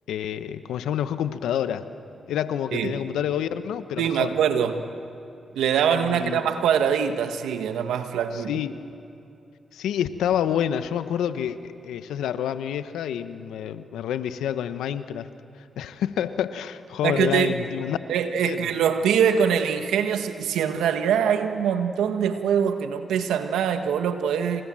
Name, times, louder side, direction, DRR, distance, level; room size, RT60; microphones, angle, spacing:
voice 1, 0.1-1.9 2.3-4.3 5.9-6.4 8.3-8.8 9.7-15.3 15.8-18.0 18.4-18.7, left 9 dB, 85° left, 11 dB, 1.1 m, -28 dB
voice 2, 4.0-4.9 5.5-8.6 17.0-17.6 18.1-24.6, right 8 dB, 85° right, 8 dB, 1.5 m, -23 dB
28.0 x 27.5 x 7.6 m, 2.8 s
supercardioid pair, 45°, 0 cm